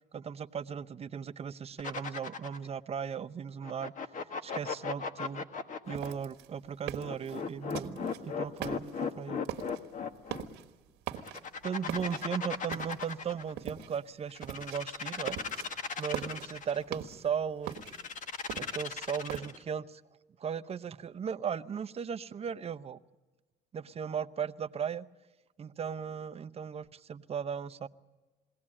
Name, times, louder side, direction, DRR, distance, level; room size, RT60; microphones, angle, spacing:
voice 1, 0.1-3.9 4.4-5.4 5.9-8.9 9.2-9.4 11.6-15.4 16.0-17.8 18.6-20.0 20.4-23.0 23.7-25.0 25.6-27.9, right 7 dB, 35° right, 10 dB, 0.8 m, -37 dB
sound 1, 1.8-2.7 3.6-6.1 7.0-10.4 11.2-13.5 14.3-16.8 17.7-19.6, left 5 dB, 50° left, 1.5 m, -37 dB
sound 2, 5.9-8.2 8.6-9.1 9.4-9.9 10.2-10.7 11.0-11.6 11.9-13.2 13.6-14.1 14.4-14.8 15.1-15.7 16.0-17.3 17.7-19.4, right 10 dB, 85° right, 1.6 m, -41 dB
22.5 x 17.5 x 8.7 m, 1.3 s
cardioid pair, 110°, 17 cm